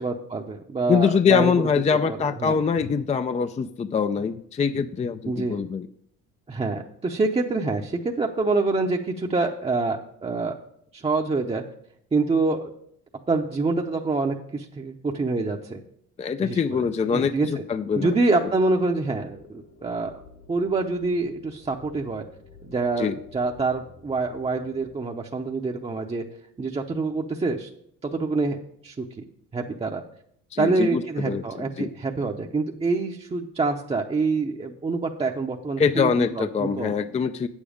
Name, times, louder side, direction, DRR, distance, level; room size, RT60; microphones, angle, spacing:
voice 1, 0.0-1.5 2.0-2.6 5.3-5.6 6.5-10.5 10.9-11.6 12.1-12.7 13.3-15.8 16.4-17.5 17.9-20.2 20.5-22.3 22.6-26.2 26.6-27.7 28.0-28.6 28.8-29.2 29.5-30.0 30.6-36.9, right 3 dB, 20° right, 1 dB, 0.7 m, -26 dB
voice 2, 0.9-5.9 16.2-18.1 23.0-23.1 30.5-31.9 35.8-37.5, left 6 dB, 20° left, 10 dB, 0.4 m, -24 dB
sound 1, 17.7-25.0, left 4 dB, 65° left, 1.9 m, -51 dB
8.3 x 7.2 x 5.1 m, 0.70 s
supercardioid pair, 80°, 32 cm